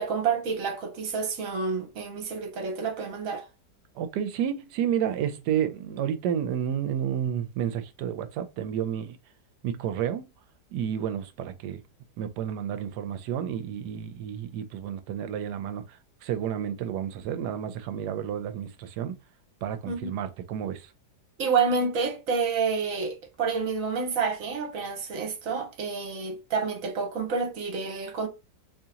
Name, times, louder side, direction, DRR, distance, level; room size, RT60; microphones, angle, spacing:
voice 1, 0.0-3.4 19.9-20.1 21.4-28.3, right 5 dB, 55° right, 1.3 m, -29 dB
voice 2, 3.9-9.2 9.6-10.3 10.7-11.8 12.2-19.1 19.6-20.9, right 9 dB, 80° right, 1.2 m, -31 dB
3.6 x 3.0 x 2.8 m
omnidirectional pair, 1.8 m